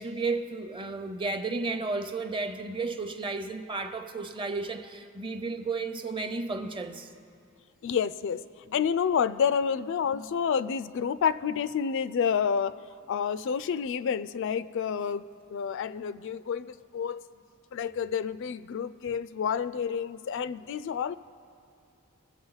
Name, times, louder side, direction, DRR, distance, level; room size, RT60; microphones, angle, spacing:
voice 1, 0.0-7.1, right 3 dB, 25° right, 0.7 m, -33 dB
voice 2, 7.8-12.8 13.1-17.3 17.7-21.2, left 7 dB, 65° left, 0.3 m, -29 dB
22.0 x 7.4 x 4.0 m
head